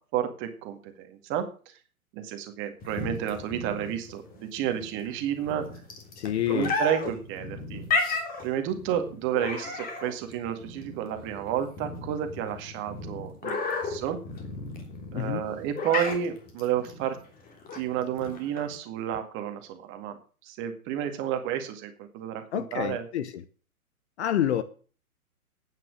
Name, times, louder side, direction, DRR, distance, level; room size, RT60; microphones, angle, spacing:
voice 1, 0.0-1.7 2.1-5.6 6.5-7.8 8.4-14.2 15.1-17.2 17.7-20.2 20.4-23.1, right 10 dB, 25° right, 2.0 m, -31 dB
sound 1, 2.8-18.8, left 3 dB, 20° left, 3.3 m, -34 dB
voice 2, 6.2-6.7 7.0-7.1 15.1-15.4 22.5-23.4 24.2-24.6, left 11 dB, 50° left, 1.3 m, -28 dB
12.0 x 9.4 x 6.4 m
figure-of-eight pair, 125°, 44 cm